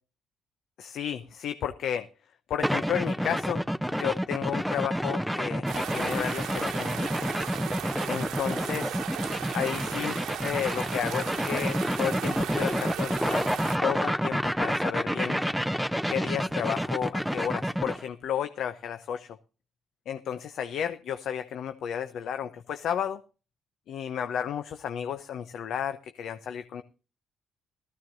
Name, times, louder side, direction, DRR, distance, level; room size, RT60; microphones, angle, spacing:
voice 1, 0.8-2.1 2.5-3.7 4.0-7.4 8.1-9.0 9.5-10.2 10.4-13.5 13.8-15.4 16.1-19.4 20.1-23.2 23.9-26.8, left 9 dB, 75° left, 10 dB, 0.7 m, -32 dB
sound 1, 2.6-18.0, equal, ahead, 0.5 m, -29 dB
sound 2, 5.6-13.8, right 10 dB, 85° right, 1.1 m, -36 dB
17.0 x 14.0 x 2.6 m, 0.35 s
cardioid pair, 90°, 0 cm